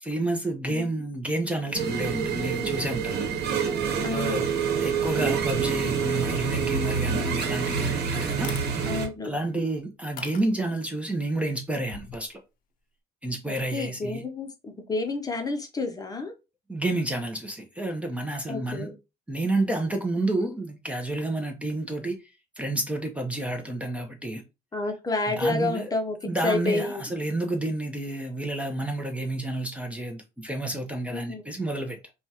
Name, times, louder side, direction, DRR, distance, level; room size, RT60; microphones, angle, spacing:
voice 1, 0.0-3.2 4.1-4.5 4.7-8.5 9.2-12.4 13.2-14.2 16.7-18.9 19.3-22.2 22.6-24.4 25.3-25.9 26.2-32.0, right 2 dB, 10° right, 0.8 m, -30 dB
sound 1, 1.7-9.1, right 6 dB, 75° right, 1.0 m, -27 dB
voice 2, 4.0-4.5 8.9-9.3 13.5-16.3 18.5-18.9 24.7-26.2 26.4-27.0 31.1-31.4, left 3 dB, 20° left, 0.8 m, -29 dB
sound 2, 8.4-8.7 9.4-9.5 10.2-10.9 11.8-12.3, left 8 dB, 55° left, 0.6 m, -41 dB
5.2 x 2.3 x 2.9 m
cardioid pair, 110°, 17 cm